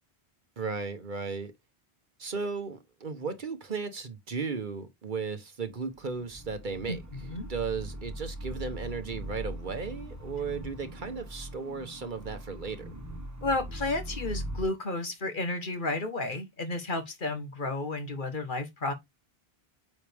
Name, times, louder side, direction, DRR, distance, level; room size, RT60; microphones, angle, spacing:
voice 1, 0.6-1.5 2.2-7.0 7.5-12.9, right 5 dB, 50° right, 1.2 m, -35 dB
sound 1, 5.9-14.7, equal, 15° right, 1.4 m, -40 dB
voice 2, 13.4-18.9, left 2 dB, 55° left, 1.5 m, -32 dB
8.7 x 4.3 x 3.5 m
omnidirectional pair, 1.0 m